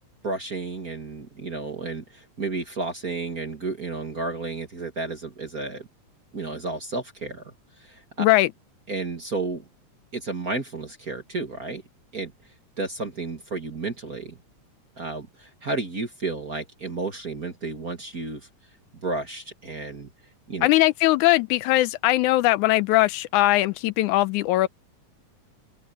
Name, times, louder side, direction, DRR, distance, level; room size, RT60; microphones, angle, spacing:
voice 1, 0.2-5.9 6.3-7.4 7.8-8.3 8.9-9.6 10.1-11.8 12.1-12.3 12.8-14.4 15.0-18.4 19.0-20.1 20.5-20.7, right 3 dB, 35° right, 2.0 m, -32 dB
voice 2, 8.2-8.5 20.6-24.7, left 17 dB, 90° left, 2.1 m, -20 dB
open air
omnidirectional pair, 3.5 m